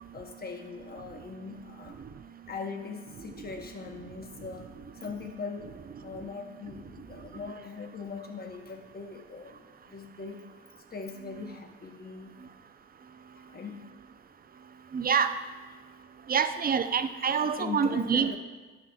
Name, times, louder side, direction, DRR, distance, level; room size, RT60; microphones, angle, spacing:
voice 1, 0.0-2.0 2.5-5.8 6.0-12.4 13.4-13.9 15.4-15.5 16.9-17.1 17.6-18.4, left 5 dB, 30° left, 4 dB, 1.0 m, -41 dB
voice 2, 14.9-15.3 16.3-18.3, right 6 dB, 30° right, 10 dB, 0.5 m, -26 dB
11.5 x 5.8 x 2.3 m, 1.3 s
cardioid pair, 90°, 30 cm